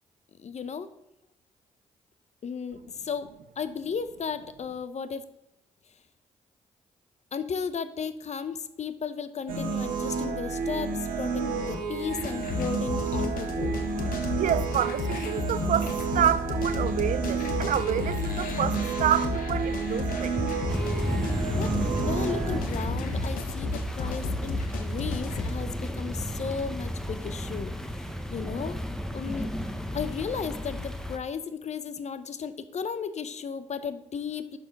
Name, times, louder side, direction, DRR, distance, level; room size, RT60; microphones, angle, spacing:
voice 1, 0.4-0.9 2.4-3.3 3.6-5.2 7.3-13.7 21.6-28.8 29.1-29.5 29.9-34.6, left 6 dB, 55° left, 0.6 m, -35 dB
sound 1, 9.5-22.6, right 4 dB, 80° right, 1.1 m, -31 dB
sound 2, 12.1-25.5, left 2 dB, 80° left, 0.9 m, -33 dB
voice 2, 14.0-20.5, right 10 dB, 65° right, 0.4 m, -28 dB
sound 3, 20.7-31.2, equal, 5° left, 0.9 m, -33 dB
6.2 x 5.9 x 5.1 m
supercardioid pair, 45°, 14 cm